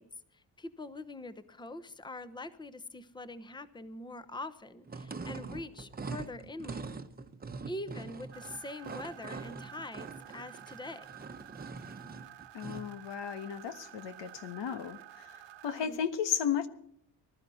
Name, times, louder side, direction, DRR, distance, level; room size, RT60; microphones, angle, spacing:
voice 1, 0.0-6.9 7.6-11.1 15.7-16.0, left 2 dB, 10° left, 13 dB, 0.9 m, -44 dB
sound 1, 4.8-12.9, right 4 dB, 20° right, 1.0 m, -43 dB
sound 2, 8.3-15.9, right 12 dB, 85° right, 1.2 m, -51 dB
voice 2, 12.5-16.7, left 8 dB, 85° left, 10 dB, 1.4 m, -34 dB
20.0 x 12.5 x 4.2 m, 0.68 s
cardioid pair, 115°, 42 cm